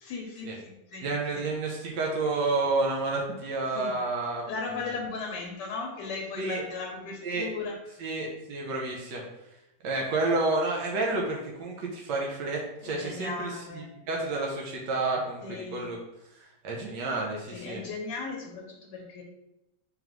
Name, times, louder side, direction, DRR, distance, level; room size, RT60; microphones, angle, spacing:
voice 1, 0.0-1.1 1.3-1.4 3.7-3.9 4.5-8.0 12.8-13.9 15.4-16.0 17.5-19.2, left 4 dB, 85° left, 1 dB, 1.3 m, -37 dB
voice 2, 1.0-4.4 6.4-6.6 7.2-7.5 8.0-9.2 9.8-15.4 15.7-16.0 16.6-17.8, right 3 dB, 85° right, -1 dB, 1.3 m, -30 dB
3.9 x 3.4 x 2.9 m, 0.92 s
omnidirectional pair, 1.8 m